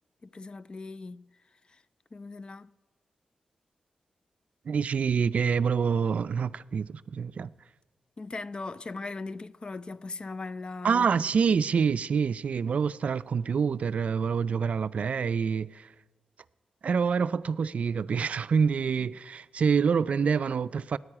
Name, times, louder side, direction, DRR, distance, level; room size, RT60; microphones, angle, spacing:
voice 1, 0.2-1.3 1.7-1.8 2.1-2.7 8.2-11.3, left 3 dB, 40° left, 0.4 m, -39 dB
voice 2, 4.7-7.5 10.8-15.7 16.8-21.0, right 6 dB, 65° right, 0.4 m, -26 dB
14.5 x 9.5 x 9.8 m
cardioid pair, 65°, 2 cm